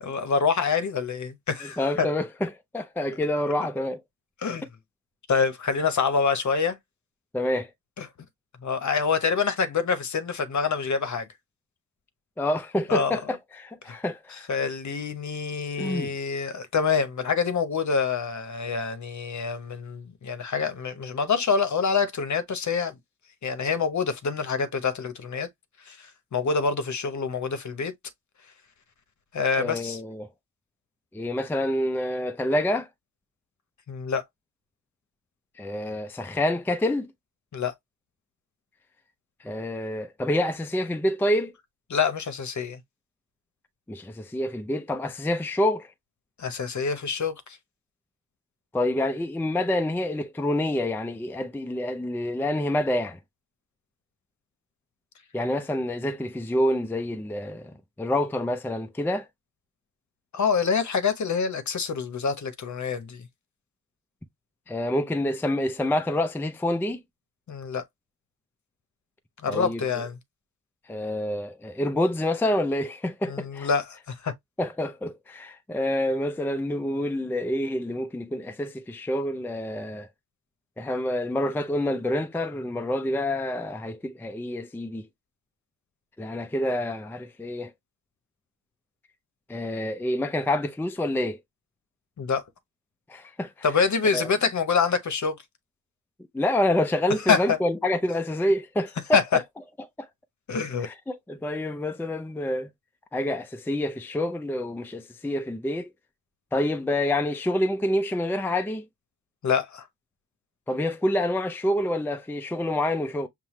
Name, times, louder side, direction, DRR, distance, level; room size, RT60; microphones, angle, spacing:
voice 1, 0.0-2.1 4.4-4.7 5.3-6.8 8.0-8.1 8.6-11.3 12.9-13.2 13.9-14.0 14.3-22.9 23.4-25.5 25.9-27.9 29.3-30.0 33.9-34.2 37.5-37.7 41.9-42.8 46.4-47.3 60.3-63.2 67.5-67.8 69.4-70.2 73.3-74.3 92.2-92.4 93.6-95.4 97.3-97.6 99.1-99.2 100.5-100.9 109.4-109.8, left 5 dB, 45° left, 0.9 m, -26 dB
voice 2, 1.8-4.0 7.3-7.7 12.4-14.4 15.8-16.1 29.6-30.3 31.1-32.9 35.6-37.1 39.4-41.5 43.9-45.9 48.7-53.2 55.3-59.3 64.7-67.0 69.5-69.8 70.9-73.7 74.6-80.1 80.8-85.1 86.2-87.7 89.5-91.4 93.1-93.5 94.1-94.2 96.3-99.4 100.0-100.1 100.8-102.7 103.1-105.9 106.5-108.8 110.7-113.3, left 1 dB, 5° left, 0.5 m, -27 dB
5.6 x 2.2 x 3.1 m
cardioid pair, 60°, 40 cm